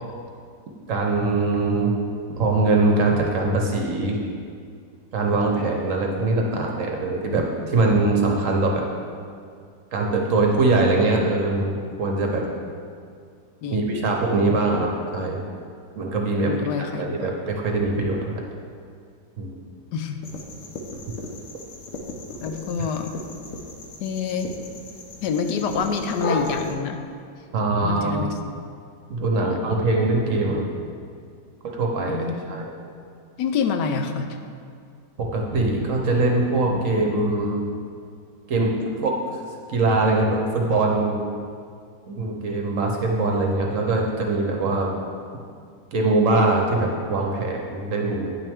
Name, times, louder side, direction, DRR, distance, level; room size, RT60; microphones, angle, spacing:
voice 1, 0.9-1.9 2.4-4.2 5.1-8.8 9.9-11.7 12.0-12.4 13.7-15.5 15.9-16.5 16.8-18.3 19.4-19.6 27.5-28.2 29.1-30.6 31.6-32.7 35.2-37.6 38.5-38.7 39.0-39.1 39.7-41.3 42.1-44.9 45.9-48.4, right 2 dB, 60° right, 1 dB, 1.0 m, -22 dB
voice 2, 13.6-14.0 16.5-17.3 19.9-20.3 22.4-23.1 24.0-24.5 25.2-27.0 27.8-28.4 29.4-29.6 32.1-32.6 33.4-34.4, left 5 dB, 80° left, 6 dB, 1.2 m, -27 dB
sound 1, 20.2-26.7, left 2 dB, 60° left, 1.1 m, -35 dB
9.7 x 6.1 x 3.5 m, 2.2 s
omnidirectional pair, 1.8 m